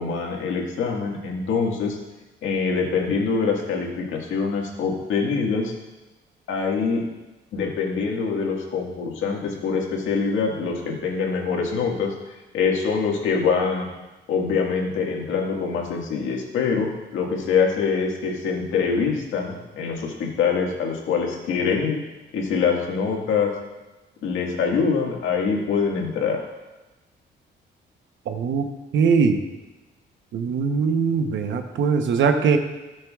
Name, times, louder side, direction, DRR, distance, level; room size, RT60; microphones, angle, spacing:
voice 1, 0.0-2.0 2.4-5.7 6.5-7.0 7.5-12.1 12.5-13.9 14.3-22.0 22.3-23.5 24.2-26.4, left 5 dB, 80° left, 0 dB, 1.8 m, -24 dB
voice 2, 28.3-28.7 28.9-29.4 30.3-32.6, right 5 dB, 70° right, 6 dB, 1.0 m, -21 dB
17.5 x 6.5 x 2.4 m, 1.1 s
cardioid pair, 90°, 20 cm